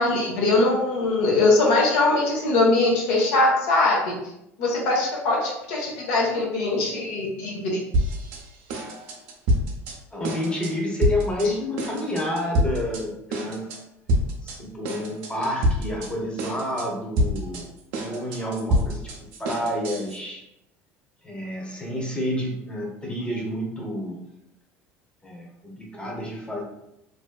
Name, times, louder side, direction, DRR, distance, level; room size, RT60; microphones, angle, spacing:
voice 1, 0.0-4.2 4.6-7.8, left 2 dB, 75° left, -2 dB, 0.6 m, -21 dB
sound 1, 7.9-8.4 8.7-9.9 10.2-10.7 11.0-11.5 11.8-13.0 13.3-13.8 14.1-14.6 14.8-16.1 16.4-16.9 17.2-20.2, equal, 70° right, 0.5 m, -26 dB
voice 2, 10.1-13.7 14.4-17.7 18.0-20.4 21.2-24.2 25.2-26.6, left 1 dB, 15° left, -1 dB, 0.8 m, -29 dB
2.6 x 2.2 x 2.2 m, 0.83 s
hypercardioid pair, 70°, 7 cm